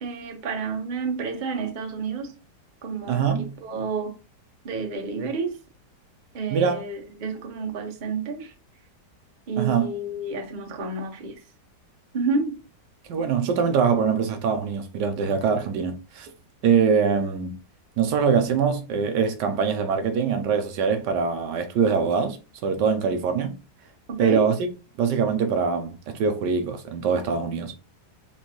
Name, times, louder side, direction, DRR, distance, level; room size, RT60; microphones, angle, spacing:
voice 1, 0.0-2.3 2.8-4.1 4.6-5.6 6.3-8.5 9.5-11.4 12.1-12.6 24.1-24.4, right 4 dB, 40° right, 0.7 m, -30 dB
voice 2, 3.1-3.6 6.5-6.8 9.6-9.9 13.1-16.3 16.6-17.5 18.0-22.4 22.6-23.5 24.2-24.7 25.0-27.7, right 6 dB, 80° right, 1.3 m, -23 dB
4.4 x 3.2 x 3.0 m
omnidirectional pair, 1.9 m